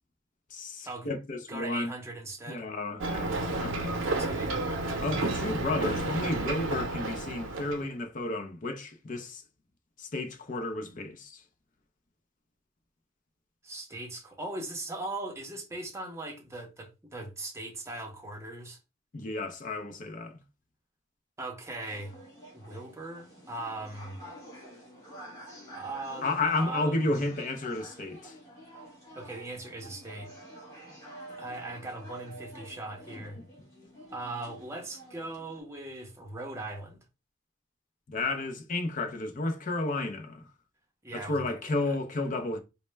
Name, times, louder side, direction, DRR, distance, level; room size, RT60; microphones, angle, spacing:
voice 1, 0.5-1.9 2.5-4.0 5.0-9.4 10.0-11.4 19.1-20.4 26.2-28.4 38.1-40.5 41.1-42.6, left 2 dB, 40° left, 0.5 m, -32 dB
voice 2, 1.5-2.7 3.9-4.8 13.6-18.8 21.4-22.1 22.5-24.2 25.7-26.3 26.6-27.2 29.1-30.3 31.3-33.4 34.1-37.0 41.0-41.9, right 2 dB, 15° right, 0.7 m, -39 dB
Ocean, 3.0-7.9, right 2 dB, 90° right, 0.6 m, -31 dB
sound 1, 21.8-35.6, right 1 dB, 20° left, 1.4 m, -49 dB
4.1 x 2.1 x 3.2 m
head